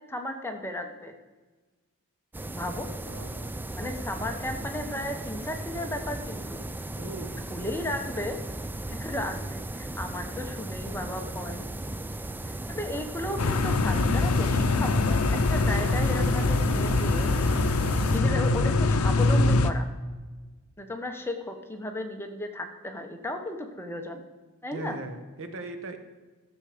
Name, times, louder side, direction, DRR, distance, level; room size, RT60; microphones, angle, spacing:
voice 1, 0.1-1.1 2.5-2.9 3.7-6.6 7.5-8.4 8.9-11.6 12.7-15.2 15.5-17.3 18.1-19.9 20.8-24.2 24.6-25.0, left 1 dB, 10° left, 4 dB, 1.0 m, -34 dB
sound 1, 2.3-18.2, right 1 dB, 10° right, 0.3 m, -36 dB
voice 2, 3.1-3.5 7.0-7.4 24.7-26.0, right 2 dB, 60° right, 7 dB, 1.1 m, -38 dB
sound 2, 13.4-19.7, left 3 dB, 70° left, 0.6 m, -23 dB
13.5 x 6.9 x 5.0 m, 1.3 s
head